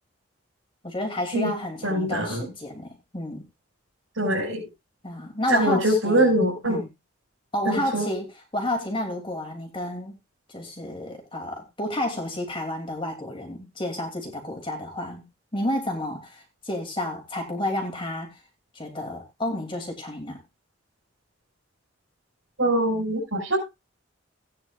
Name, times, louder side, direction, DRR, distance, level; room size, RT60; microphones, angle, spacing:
voice 1, 0.8-3.4 5.0-6.4 6.7-6.9 7.5-8.3 8.5-10.1 10.5-15.2 15.5-18.4 18.7-20.4, left 1 dB, 25° left, 2.9 m, -31 dB
voice 2, 1.8-2.5 4.2-4.6 5.5-6.8 7.7-8.1 22.6-23.6, right 1 dB, 80° right, 5.6 m, -23 dB
17.5 x 9.6 x 2.5 m
head